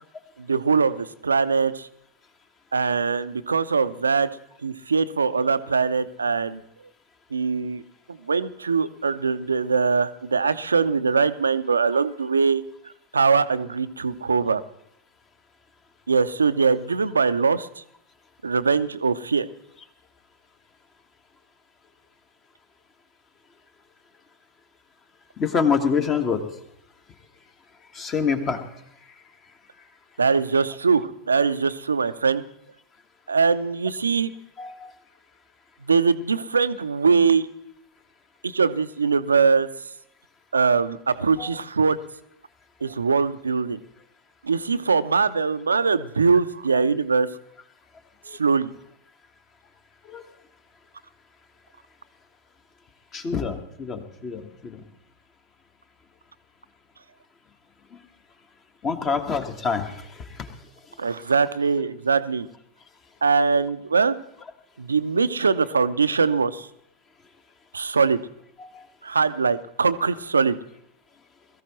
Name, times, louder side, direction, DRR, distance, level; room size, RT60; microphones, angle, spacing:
voice 1, 0.4-1.9 2.7-4.3 4.6-6.6 7.3-7.8 8.3-12.6 13.1-14.6 16.1-17.7 18.4-19.5 30.2-32.4 33.3-34.3 35.9-37.5 38.4-39.7 40.5-42.0 42.8-43.8 44.4-47.3 48.4-48.7 61.0-62.5 63.2-64.2 64.8-66.7 67.7-68.2 69.0-70.6, right 5 dB, 75° right, 14 dB, 0.6 m, -22 dB
voice 2, 25.4-26.4 27.9-28.6 34.6-34.9 41.4-41.5 48.3-48.4 50.1-50.2 53.1-54.8 58.8-60.1 60.4-60.5 68.6-68.9, left 5 dB, 30° left, 7 dB, 1.5 m, -26 dB
21.5 x 14.0 x 3.1 m, 0.75 s
figure-of-eight pair, 90°, 0 cm